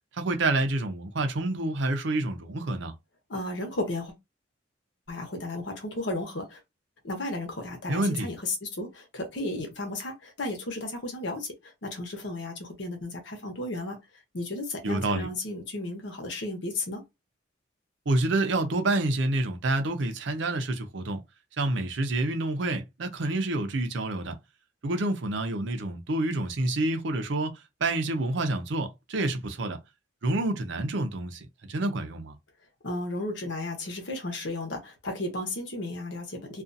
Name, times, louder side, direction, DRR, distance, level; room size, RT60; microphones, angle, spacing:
voice 1, 0.1-2.9 7.9-8.3 14.8-15.3 18.1-21.2 21.6-24.4 24.8-27.5 27.8-29.8 30.2-32.3, right 2 dB, 70° right, 0.6 m, -28 dB
voice 2, 3.3-4.1 5.1-6.6 7.0-14.0 14.3-17.0 32.8-36.6, left 2 dB, 70° left, 1.0 m, -34 dB
2.5 x 2.3 x 2.6 m
head